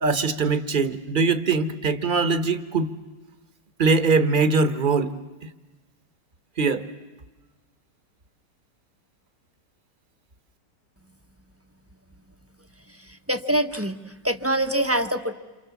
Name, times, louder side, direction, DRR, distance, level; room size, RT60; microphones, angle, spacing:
voice 1, 0.0-2.9 3.8-5.1 6.6-6.9, right 4 dB, 30° right, 11 dB, 1.2 m, -22 dB
voice 2, 12.9-15.3, right 1 dB, 10° right, 7 dB, 0.8 m, -25 dB
28.0 x 28.0 x 7.2 m, 1.2 s
omnidirectional pair, 1.9 m